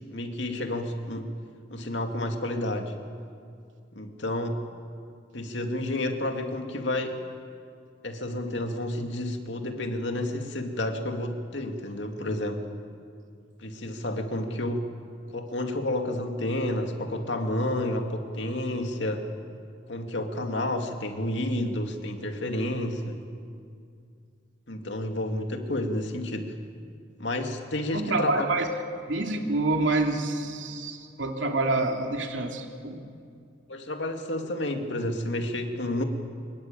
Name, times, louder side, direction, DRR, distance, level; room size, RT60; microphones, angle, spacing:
voice 1, 0.1-1.3 1.7-2.9 4.0-4.6 5.3-7.2 8.0-12.6 13.6-14.9 15.3-19.3 19.9-23.2 24.7-26.5 27.2-28.5 33.7-36.0, left 1 dB, 65° left, 4 dB, 2.3 m, -30 dB
voice 2, 27.9-28.7 29.1-33.1, right 2 dB, 75° right, 3 dB, 2.8 m, -27 dB
25.5 x 22.0 x 9.1 m, 2.4 s
head